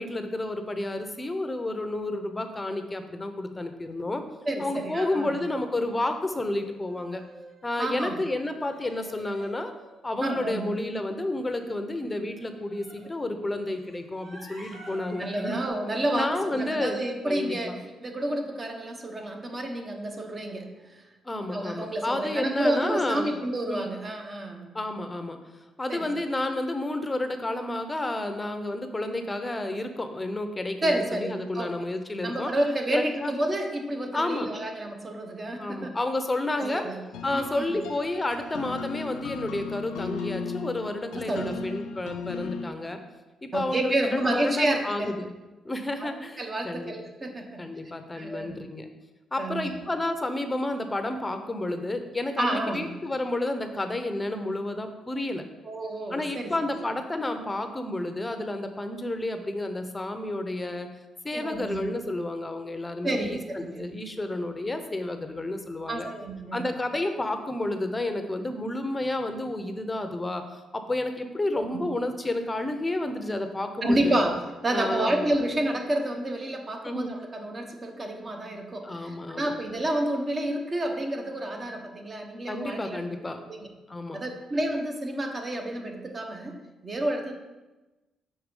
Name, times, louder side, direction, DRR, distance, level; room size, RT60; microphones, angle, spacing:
voice 1, 0.0-4.2 4.6-7.2 7.6-9.7 10.0-15.6 16.1-17.0 17.2-17.8 21.2-23.3 23.7-23.9 24.7-25.4 25.8-32.5 32.9-33.3 34.1-34.5 35.6-36.9 37.2-43.0 43.4-45.3 45.6-46.9 47.6-48.9 49.3-55.5 56.1-60.9 61.2-66.1 66.5-74.1 74.7-75.3 76.8-77.1 78.8-79.5 82.5-83.4 83.9-84.2, left 2 dB, 20° left, 7 dB, 0.7 m, -31 dB
voice 2, 4.5-5.3 7.8-8.2 10.2-10.7 15.2-17.7 18.0-21.0 21.5-24.7 25.9-26.1 30.8-31.9 32.2-35.9 36.6-37.0 37.3-37.8 41.3-41.8 43.5-45.1 46.0-46.1 46.4-47.6 48.1-48.6 49.4-49.7 52.4-52.9 55.6-56.8 61.3-61.8 63.0-63.9 65.9-66.7 71.5-71.8 73.8-83.0 83.5-83.7 84.1-87.3, right 1 dB, 30° right, 3 dB, 1.0 m, -30 dB
sound 1, 5.4-5.5 6.0-6.6 6.8-7.9 8.7-10.4 12.3-13.1 13.6-15.7, right 2 dB, 60° right, 2.2 m, -49 dB
sound 2, 37.1-42.7, left 5 dB, 90° left, 0.5 m, -36 dB
5.8 x 4.7 x 5.3 m, 1.1 s
cardioid pair, 90°, 0 cm